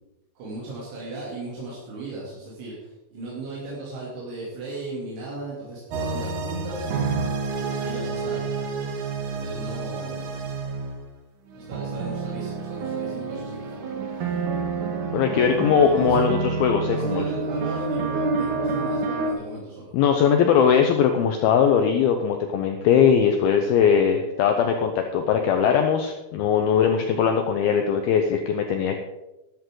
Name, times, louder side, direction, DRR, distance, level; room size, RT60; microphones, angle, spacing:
voice 1, 0.4-6.9 7.8-8.7 9.3-10.6 11.6-13.8 14.1-14.4 15.8-16.4 16.8-19.9, right 2 dB, 80° right, -6 dB, 5.3 m, -36 dB
sound 1, 5.9-11.1 11.5-19.3, right 4 dB, 60° right, 2.2 m, -28 dB
voice 2, 15.1-17.2 19.9-29.0, left 7 dB, 75° left, 5 dB, 2.3 m, -20 dB
13.5 x 12.5 x 3.9 m, 0.99 s
omnidirectional pair, 5.2 m